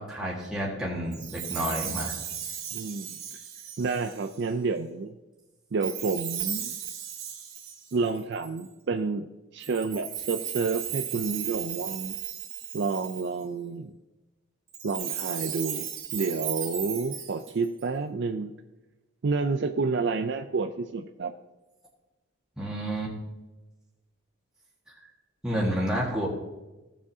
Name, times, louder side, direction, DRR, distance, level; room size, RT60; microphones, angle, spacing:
voice 1, 0.0-2.1 22.6-23.1 25.4-26.3, equal, 5° right, -5 dB, 1.7 m, -30 dB
Chime, 1.1-4.5 5.8-8.7 9.6-13.4 14.7-17.8, right 9 dB, 75° right, 2.1 m, -36 dB
voice 2, 2.7-3.2 3.8-5.2 5.7-6.8 7.9-12.2 12.7-13.9 14.8-18.5 19.2-21.3, right 4 dB, 55° right, 6 dB, 0.4 m, -29 dB
15.5 x 7.2 x 2.7 m, 1.1 s
head